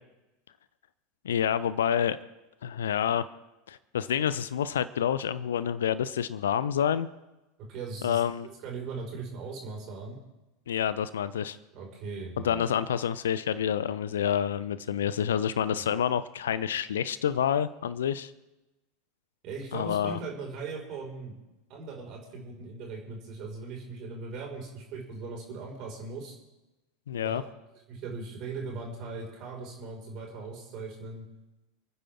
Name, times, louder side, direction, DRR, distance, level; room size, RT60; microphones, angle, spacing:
voice 1, 1.2-2.2 2.6-3.2 3.7-7.1 8.0-8.5 10.7-11.6 12.4-18.3 19.7-20.2 27.1-27.4, left 9 dB, 65° left, 16 dB, 0.7 m, -28 dB
voice 2, 7.7-8.2 8.6-10.2 11.7-12.7 15.6-15.9 19.4-21.4 21.7-26.3 27.2-27.5 27.9-31.2, right 4 dB, 40° right, -1 dB, 5.5 m, -39 dB
28.0 x 9.9 x 3.8 m, 1.0 s
figure-of-eight pair, 80°, 0 cm